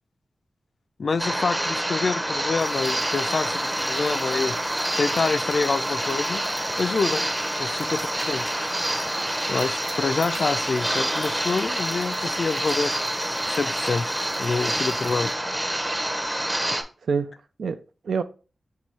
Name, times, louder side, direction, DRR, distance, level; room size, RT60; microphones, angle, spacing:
voice 1, 1.0-4.6 5.0-6.4 6.8-7.3 7.6-8.5 9.5-12.9 13.5-14.1 14.4-15.3, left 4 dB, 60° left, 0.4 m, -26 dB
sound 1, 1.2-16.8, right 1 dB, 10° right, 0.6 m, -27 dB
sound 2, 2.6-15.3, right 2 dB, 60° right, 1.0 m, -45 dB
voice 2, 16.7-18.2, right 5 dB, 85° right, 0.3 m, -29 dB
4.6 x 2.7 x 4.1 m
wide cardioid pair, 90°, 0 cm